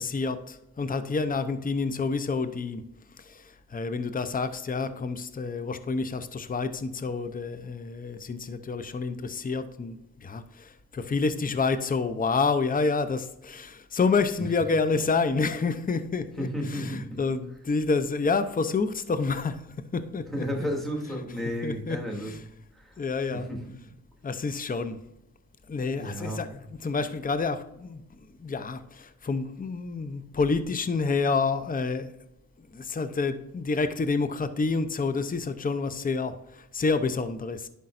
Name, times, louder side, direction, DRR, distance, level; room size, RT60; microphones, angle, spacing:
voice 1, 0.0-2.8 3.2-19.6 19.9-20.4 21.6-22.4 23.0-23.5 24.2-25.0 25.7-28.0 28.4-32.1 32.6-37.7, left 4 dB, 25° left, 11 dB, 0.7 m, -28 dB
voice 2, 16.4-17.2 20.3-22.3 22.7-23.0 23.3-23.6 26.0-26.4, equal, ahead, -1 dB, 2.8 m, -32 dB
10.5 x 5.3 x 2.6 m, 0.83 s
cardioid pair, 65°, 36 cm